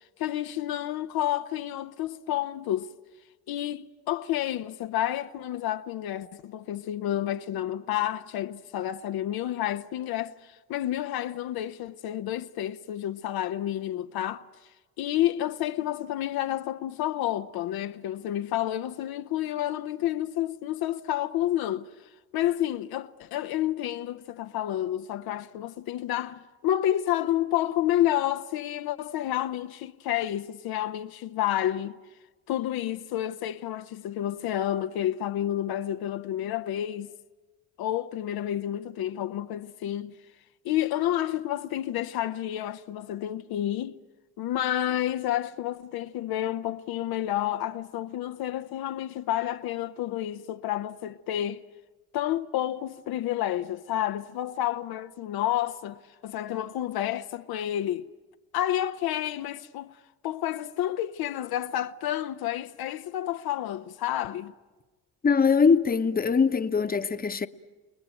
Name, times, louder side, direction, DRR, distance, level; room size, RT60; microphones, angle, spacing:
voice 1, 0.0-2.9 3.5-14.4 15.0-21.9 22.3-32.0 32.5-37.1 37.8-40.1 40.6-44.0 44.4-51.6 52.1-58.1 58.5-59.9 60.2-64.5, left 12 dB, 65° left, 0.8 m, -30 dB
voice 2, 65.2-67.5, left 5 dB, 25° left, 1.0 m, -22 dB
29.0 x 20.0 x 9.0 m
supercardioid pair, 75°, 39 cm